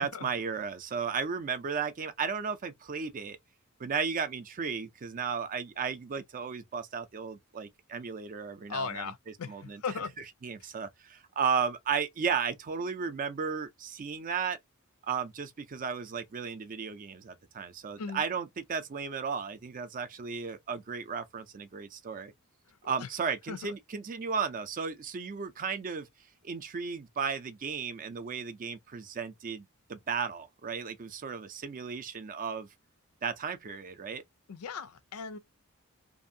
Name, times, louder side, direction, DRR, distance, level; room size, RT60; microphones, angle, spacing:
voice 1, 0.0-3.4 3.8-9.0 9.5-9.8 10.4-14.6 15.1-22.3 22.8-26.1 26.4-32.7 33.2-34.2, right 6 dB, 40° right, 0.4 m, -34 dB
voice 2, 8.7-10.1 10.6-10.7 18.0-18.2 22.7-23.1 23.5-23.7 34.5-35.4, left 5 dB, 90° left, 0.5 m, -38 dB
2.6 x 2.4 x 2.6 m
head